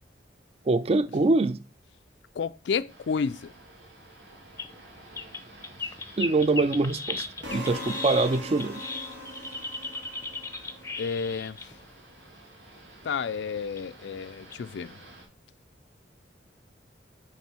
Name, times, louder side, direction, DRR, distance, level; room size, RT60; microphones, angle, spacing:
voice 1, 0.7-1.6 6.2-7.2 7.5-8.8, right 3 dB, 35° right, 0.4 m, -24 dB
voice 2, 2.4-3.5 11.0-11.7 13.0-14.9, left 6 dB, 70° left, 0.4 m, -31 dB
sound 1, 2.9-15.3, right 1 dB, 70° right, 3.5 m, -52 dB
sound 2, 4.6-4.7 5.1-11.7 13.0-13.1 13.8-13.9 14.5-14.6, left 3 dB, 15° left, 0.6 m, -36 dB
sound 3, 7.4-11.5, equal, 90° right, 2.9 m, -41 dB
7.2 x 3.6 x 6.1 m
head